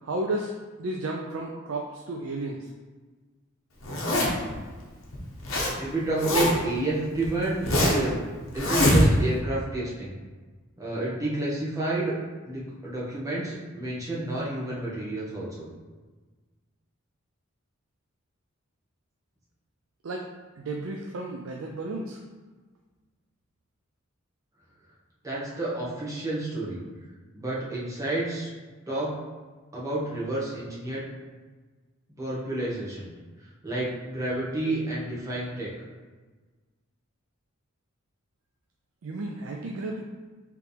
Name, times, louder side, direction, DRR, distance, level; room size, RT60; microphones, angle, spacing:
voice 1, 0.0-2.7 20.0-20.3 20.6-22.2 39.0-40.0, right 2 dB, 70° right, 0 dB, 0.4 m, -33 dB
Zipper (clothing), 3.8-4.5 5.1-5.7 6.0-6.7 7.2-8.1 8.5-9.4, left 1 dB, 75° left, 1.1 m, -23 dB
voice 2, 5.8-8.2 8.5-10.1 10.8-12.2 12.4-15.7 25.2-26.8 27.3-28.5 28.9-29.1 29.7-31.0 32.2-33.1 33.6-35.7, right 2 dB, 15° right, -7 dB, 1.2 m, -30 dB
4.9 x 3.2 x 3.3 m, 1.4 s
head